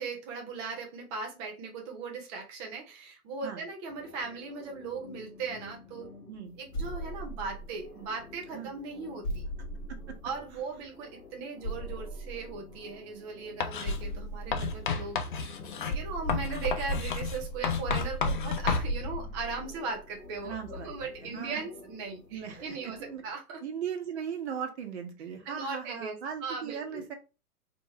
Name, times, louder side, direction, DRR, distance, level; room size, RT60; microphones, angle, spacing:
voice 1, 0.0-6.1 6.6-9.4 10.2-23.6 25.4-27.0, right 4 dB, 20° right, 0.6 m, -38 dB
sound 1, 3.9-23.3, left 2 dB, 90° left, 1.4 m, -53 dB
sound 2, 6.7-8.2 9.2-10.8 11.6-13.0 13.8-15.4 15.9-21.2, right 1 dB, 15° left, 0.9 m, -37 dB
Writing, 13.6-14.0 14.5-18.9, left 5 dB, 35° left, 0.5 m, -31 dB
voice 2, 20.4-20.9 21.2-21.6 22.3-22.6 23.0-23.2 23.6-27.1, right 7 dB, 45° right, 1.1 m, -37 dB
4.4 x 2.9 x 2.9 m
figure-of-eight pair, 115°, 46 cm